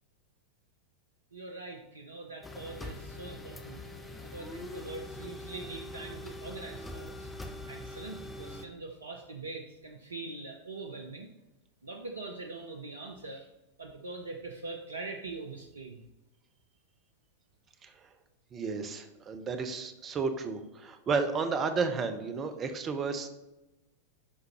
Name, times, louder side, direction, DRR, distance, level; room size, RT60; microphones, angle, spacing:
voice 1, 1.3-3.8 4.2-7.3 7.7-11.3 11.8-13.5 13.8-16.0, right 3 dB, 75° right, 4 dB, 0.5 m, -43 dB
sound 1, 2.4-8.7, left 1 dB, 10° left, 0.7 m, -43 dB
voice 2, 18.5-23.3, right 4 dB, 25° right, 8 dB, 0.8 m, -32 dB
11.0 x 3.9 x 3.0 m, 0.99 s
figure-of-eight pair, 90°, 0 cm